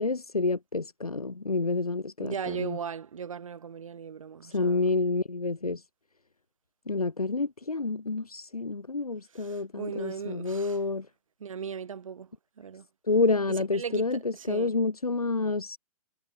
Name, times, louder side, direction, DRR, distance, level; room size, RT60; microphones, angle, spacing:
voice 1, 0.0-2.8 4.5-5.8 6.9-11.0 13.1-14.2 14.5-15.8, left 3 dB, 80° left, 3.2 m, -28 dB
voice 2, 2.2-4.9 9.3-10.8 11.4-12.3 12.6-12.9 13.5-14.8, right 7 dB, 60° right, 3.4 m, -38 dB
figure-of-eight pair, 120°, 19 cm